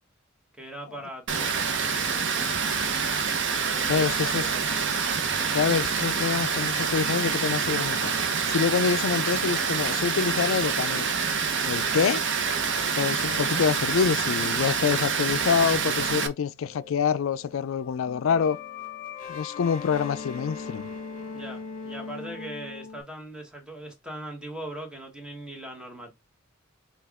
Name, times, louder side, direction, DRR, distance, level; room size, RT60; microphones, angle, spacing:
voice 1, 0.6-2.5 3.7-4.8 21.3-26.1, right 1 dB, 5° right, 1.2 m, -40 dB
Water, 1.3-16.3, right 5 dB, 60° right, 0.7 m, -26 dB
voice 2, 3.9-4.5 5.5-8.1 8.5-11.0 11.7-12.2 13.0-18.6 19.3-20.9, left 6 dB, 70° left, 0.4 m, -26 dB
sound 1, 11.0-16.3 16.6-23.0, left 5 dB, 40° left, 1.3 m, -42 dB
5.6 x 2.3 x 3.5 m
head